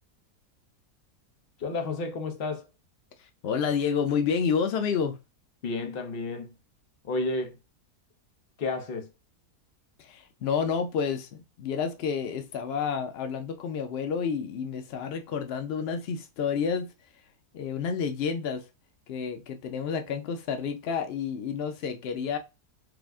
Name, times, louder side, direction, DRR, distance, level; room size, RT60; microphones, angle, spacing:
voice 1, 1.6-2.7 5.6-6.5 7.0-7.6 8.6-9.1, left 3 dB, 50° left, 0.7 m, -31 dB
voice 2, 3.2-5.2 10.0-16.9 17.5-18.6 19.1-22.4, left 6 dB, 90° left, 0.5 m, -29 dB
4.9 x 2.1 x 3.4 m
omnidirectional pair, 1.7 m